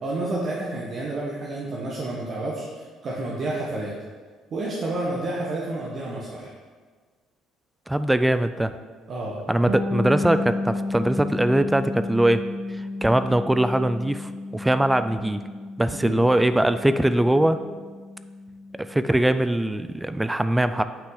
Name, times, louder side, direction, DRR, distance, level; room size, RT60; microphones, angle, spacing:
voice 1, 0.0-3.9 4.5-6.5 9.1-9.4 16.0-16.2, right 2 dB, 50° right, -4 dB, 1.2 m, -30 dB
voice 2, 7.9-8.7 9.5-12.4 12.7-15.4 15.8-17.6 18.8-20.8, right 1 dB, 10° right, 11 dB, 0.4 m, -21 dB
Bass guitar, 9.7-19.3, left 2 dB, 90° right, 0.9 m, -33 dB
8.7 x 5.6 x 3.9 m, 1.5 s
cardioid pair, 95°, 0 cm